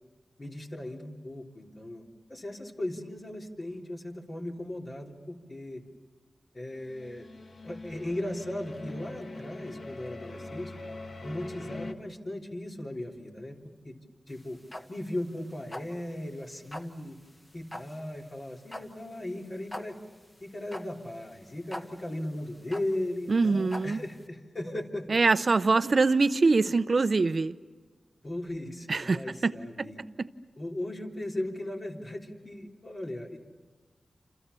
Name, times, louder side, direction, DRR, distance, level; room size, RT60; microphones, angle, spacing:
voice 1, 0.4-2.0 2.3-5.8 6.5-7.3 7.6-10.7 11.2-13.6 13.8-14.0 14.3-14.6 14.9-17.2 17.5-20.0 20.4-25.1 25.4-25.5 28.2-30.0 30.6-33.4, left 1 dB, 40° left, 3.5 m, -37 dB
sound 1, 6.9-11.9, left 2 dB, 60° left, 1.5 m, -42 dB
sound 2, 14.3-24.2, left 1 dB, 20° left, 1.5 m, -44 dB
voice 2, 23.3-24.0 25.1-27.5 28.9-29.5 29.8-30.3, right 3 dB, 50° right, 0.8 m, -24 dB
28.5 x 27.5 x 7.0 m
wide cardioid pair, 75°, 0 cm